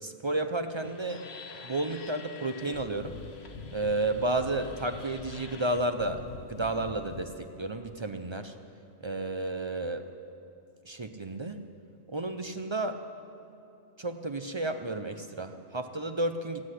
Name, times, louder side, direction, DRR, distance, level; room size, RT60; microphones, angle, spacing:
voice 1, 0.0-1.2 1.6-3.2 3.7-6.2 6.5-8.5 9.0-10.1 10.9-11.6 12.1-13.0 14.0-16.6, right 2 dB, 35° right, 7 dB, 0.5 m, -32 dB
sound 1, 0.8-7.2, left 4 dB, 60° left, 1.2 m, -45 dB
16.5 x 7.8 x 9.9 m, 2.9 s
omnidirectional pair, 1.2 m